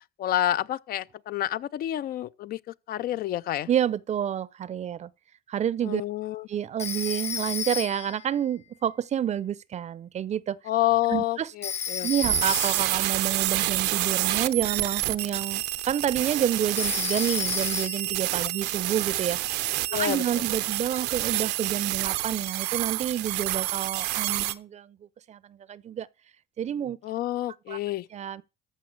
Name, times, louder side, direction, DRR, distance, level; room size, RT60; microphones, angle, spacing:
voice 1, 0.2-3.7 5.8-6.5 10.7-12.1 19.9-20.4 27.0-28.1, left 13 dB, 65° left, 0.5 m, -28 dB
voice 2, 3.7-5.1 5.5-6.0 6.5-10.6 11.1-11.5 12.0-25.0 25.3-26.1 26.6-27.0 27.7-27.8 28.1-28.4, right 10 dB, 40° right, 0.6 m, -29 dB
Telephone, 6.8-8.2 11.6-13.0 16.8-18.2, left 7 dB, 40° left, 1.3 m, -32 dB
sound 1, 12.2-24.5, right 16 dB, 90° right, 0.7 m, -28 dB
14.0 x 5.3 x 6.5 m
cardioid pair, 110°, 17 cm